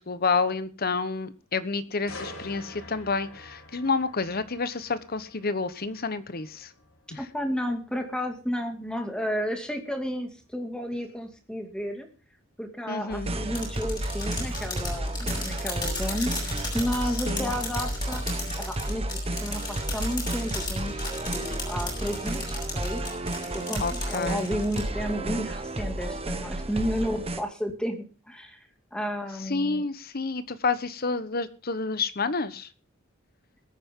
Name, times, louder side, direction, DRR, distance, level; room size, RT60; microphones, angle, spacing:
voice 1, 0.0-6.7 7.1-7.3 12.9-13.3 17.3-17.5 23.8-24.5 29.4-32.7, left 4 dB, 50° left, 13 dB, 1.1 m, -29 dB
sound 1, 2.1-15.9 16.3-16.6, left 1 dB, 80° left, 4.5 m, -49 dB
voice 2, 7.2-12.1 12.6-18.2 18.7-21.0 21.3-23.0 23.5-28.6 28.9-29.8, equal, 5° left, 4 dB, 2.4 m, -32 dB
sound 2, 13.1-27.4, right 1 dB, 30° right, 1.3 m, -32 dB
sound 3, 13.6-24.8, left 3 dB, 20° left, 6.6 m, -35 dB
22.0 x 9.3 x 3.7 m, 0.34 s
head